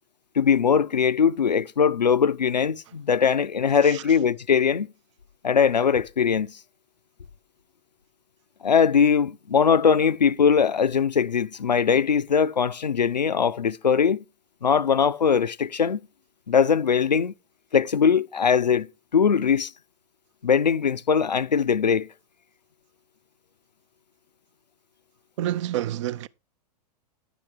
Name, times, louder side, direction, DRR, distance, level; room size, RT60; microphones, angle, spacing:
voice 1, 0.4-4.9 5.4-6.5 8.6-14.2 14.6-16.0 16.5-17.3 17.7-18.9 19.1-19.7 20.4-22.1, left 6 dB, 85° left, 0.5 m, -21 dB
voice 2, 25.4-26.3, right 12 dB, 45° right, 0.5 m, -28 dB
10.0 x 7.8 x 4.6 m
figure-of-eight pair, 100°, 21 cm